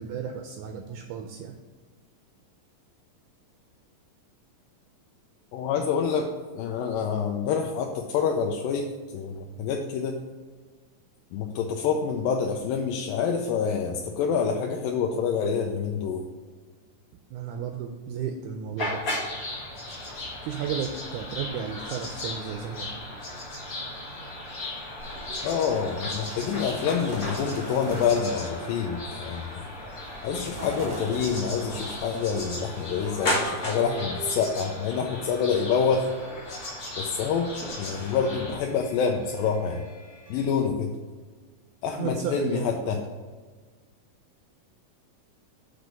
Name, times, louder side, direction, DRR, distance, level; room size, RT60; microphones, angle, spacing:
voice 1, 0.0-1.6 17.3-19.0 20.4-22.9 42.0-43.0, right 7 dB, 80° right, 5 dB, 1.8 m, -33 dB
voice 2, 5.5-10.2 11.3-16.2 25.4-29.7 30.2-36.1 37.0-37.5 37.8-39.8 40.3-40.9 41.8-43.0, left 6 dB, 85° left, 2 dB, 2.4 m, -27 dB
sound 1, 18.8-38.6, left 1 dB, 65° left, 0.8 m, -35 dB
sound 2, 23.5-40.5, left 1 dB, 10° left, 1.7 m, -53 dB
sound 3, 25.0-33.9, equal, 15° right, 1.8 m, -41 dB
6.5 x 5.1 x 6.1 m, 1.4 s
omnidirectional pair, 4.0 m